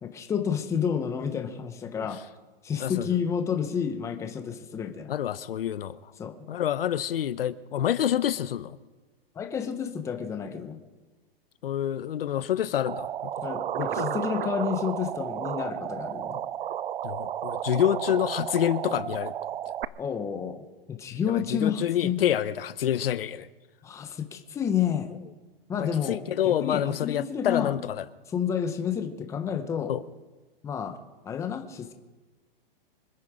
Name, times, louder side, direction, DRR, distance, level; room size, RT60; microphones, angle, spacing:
voice 1, 0.0-2.2 2.6-5.1 6.2-6.4 9.3-10.8 13.4-16.4 20.0-20.6 20.9-22.2 23.8-25.2 25.7-27.7 28.3-29.9 30.6-31.0 31.2-31.9, left 7 dB, 10° left, 6 dB, 1.0 m, -30 dB
voice 2, 5.1-6.1 6.5-8.8 11.6-13.3 13.8-14.2 17.0-19.3 19.7-19.8 21.3-23.5 25.8-28.0 29.9-30.0, left 10 dB, 70° left, 15 dB, 0.8 m, -27 dB
sound 1, 12.9-19.9, right 10 dB, 70° right, 0.7 m, -32 dB
26.0 x 9.7 x 5.0 m, 1.2 s
hypercardioid pair, 155°, 29 cm